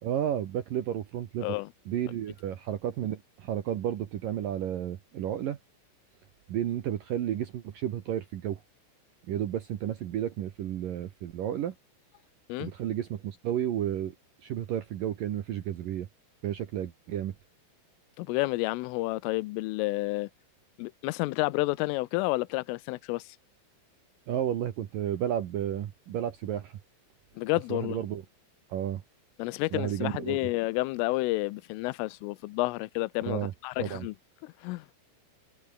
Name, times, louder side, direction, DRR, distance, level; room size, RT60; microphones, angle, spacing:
voice 1, 0.0-1.5 1.9-5.6 6.5-8.6 9.3-11.7 12.6-14.1 14.4-16.1 16.4-17.3 24.3-26.8 27.7-28.2 28.7-29.0 29.7-30.4 33.2-33.5 33.8-34.1, right 11 dB, 70° right, 2.2 m, -32 dB
voice 2, 18.2-20.3 20.8-23.4 27.4-28.0 29.4-34.1 34.4-34.9, left 21 dB, 85° left, 3.3 m, -30 dB
omnidirectional pair, 5.8 m